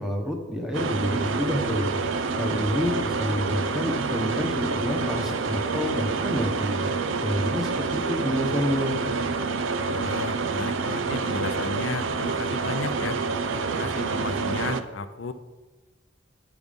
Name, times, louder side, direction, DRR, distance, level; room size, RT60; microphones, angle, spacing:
voice 1, 0.0-1.9 2.4-6.9 7.2-9.0, equal, ahead, 2 dB, 1.2 m, -28 dB
sound 1, 0.7-14.8, right 4 dB, 75° right, 0.6 m, -27 dB
voice 2, 9.7-13.2 13.6-15.3, left 4 dB, 75° left, 9 dB, 0.6 m, -34 dB
9.4 x 7.1 x 5.3 m, 1.2 s
head